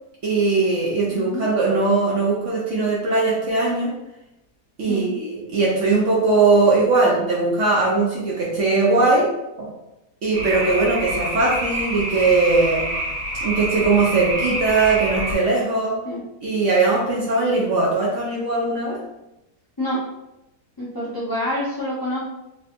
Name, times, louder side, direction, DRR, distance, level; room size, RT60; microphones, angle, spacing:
voice 1, 0.2-4.0 4.8-9.3 9.6-9.7 10.2-12.9 13.4-16.0 16.4-19.0, right 3 dB, 60° right, -4 dB, 0.8 m, -20 dB
voice 2, 1.1-1.4 4.9-5.1 16.0-16.2 19.8-20.0 20.8-22.3, left 1 dB, 25° left, -8 dB, 0.5 m, -27 dB
sound 1, 10.3-15.3, right 1 dB, 80° right, 1.4 m, -27 dB
3.2 x 2.6 x 2.5 m, 0.91 s
omnidirectional pair, 1.7 m